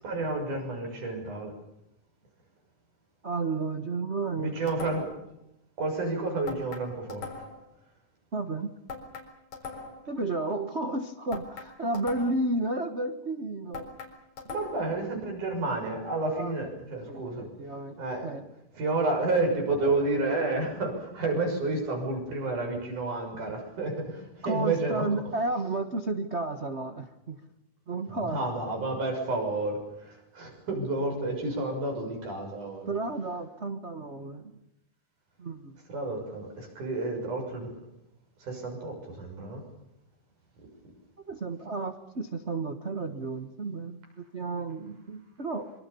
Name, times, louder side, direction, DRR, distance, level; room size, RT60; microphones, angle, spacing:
voice 1, 0.0-1.5 4.4-5.1 5.8-7.3 14.5-17.5 18.0-18.3 18.7-25.1 28.1-32.9 35.9-37.7 38.4-39.6, right 2 dB, 70° right, 3 dB, 8.1 m, -30 dB
voice 2, 3.2-5.0 8.3-8.7 10.1-13.9 16.4-16.7 17.1-18.5 24.4-27.4 27.9-28.4 32.9-34.5 35.4-35.8 41.3-45.7, right 2 dB, 90° right, 8 dB, 0.6 m, -32 dB
sound 1, 4.7-5.3 6.5-7.7 8.9-10.1 11.3-12.5 13.7-15.0, left 5 dB, 85° left, 5.8 m, -41 dB
26.0 x 24.5 x 7.0 m, 0.83 s
omnidirectional pair, 3.8 m